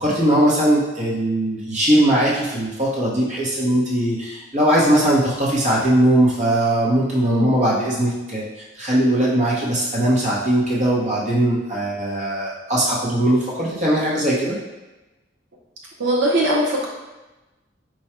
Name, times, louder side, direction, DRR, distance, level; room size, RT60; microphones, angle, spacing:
voice 1, 0.0-8.4 8.7-14.6, right 1 dB, 35° right, -6 dB, 0.9 m, -19 dB
voice 2, 7.2-7.5 16.0-16.9, right 1 dB, 75° right, -4 dB, 0.8 m, -20 dB
4.7 x 2.3 x 4.3 m, 1.1 s
head